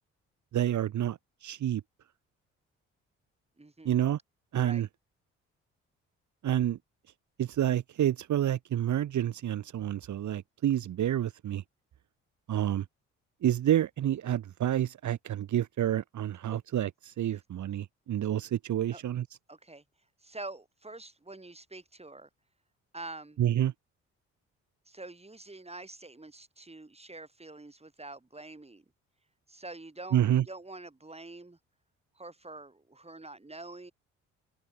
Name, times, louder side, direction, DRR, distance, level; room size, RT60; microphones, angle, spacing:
voice 1, 0.5-1.8 3.9-4.2 4.5-4.9 6.4-6.8 7.4-11.6 12.5-12.9 13.4-19.3 23.4-23.7 30.1-30.4, right 11 dB, 50° right, 1.8 m, -28 dB
voice 2, 3.6-4.0 4.6-4.8 16.5-16.6 18.9-19.0 19.5-19.8 20.2-22.3 22.9-23.4 24.9-28.8 29.5-31.6 32.2-33.9, right 2 dB, 15° right, 5.7 m, -46 dB
figure-of-eight pair, 40°, 36 cm